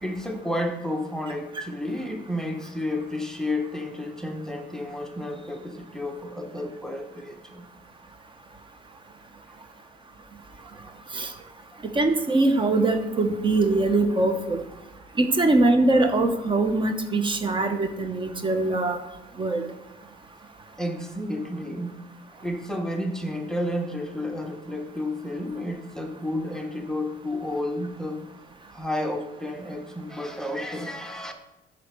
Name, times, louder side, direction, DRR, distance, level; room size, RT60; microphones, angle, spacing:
voice 1, 0.0-7.6 9.5-9.7 10.6-10.9 20.8-22.0 22.4-28.2 28.7-31.3, left 1 dB, 5° left, 4 dB, 0.8 m, -31 dB
voice 2, 11.9-14.6 15.2-19.0 19.4-19.6, right 2 dB, 30° right, 7 dB, 0.8 m, -22 dB
7.9 x 4.1 x 6.7 m, 1.0 s
cardioid pair, 110°, 17 cm